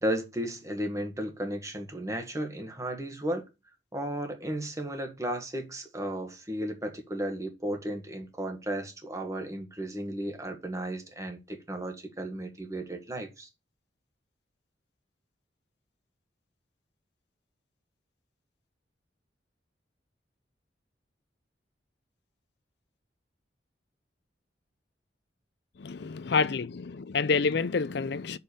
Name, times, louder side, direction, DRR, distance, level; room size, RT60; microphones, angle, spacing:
voice 1, 0.0-3.4 3.9-13.5, right 1 dB, 15° right, 1.6 m, -34 dB
voice 2, 25.8-28.4, left 5 dB, 65° left, 0.5 m, -28 dB
6.5 x 5.6 x 6.7 m
head